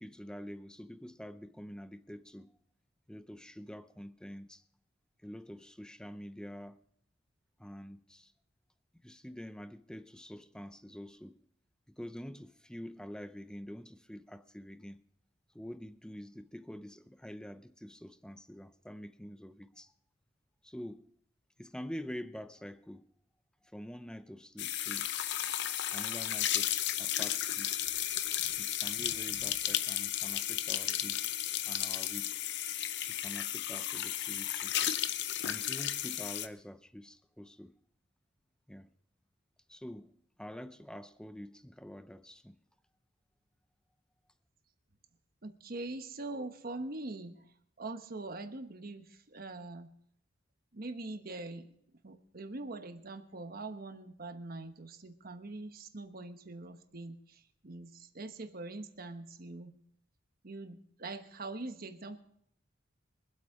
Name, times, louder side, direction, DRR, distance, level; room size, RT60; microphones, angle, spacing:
voice 1, 0.0-2.5 3.1-4.6 5.2-6.8 7.6-8.3 9.0-11.4 11.9-15.0 15.5-19.9 20.6-21.1 21.6-23.1 23.6-25.1 25.9-27.8 28.6-31.2 31.7-32.5 33.1-34.8 35.4-37.7 38.7-38.9 39.7-40.1 40.4-42.6, equal, 5° left, 0.5 m, -46 dB
sound 1, 24.6-36.5, left 12 dB, 65° left, 0.7 m, -34 dB
voice 2, 45.4-47.3 47.8-49.9 50.7-51.7 52.0-57.2 57.6-59.7 60.4-62.2, right 2 dB, 50° right, 1.1 m, -43 dB
23.0 x 8.2 x 4.8 m
head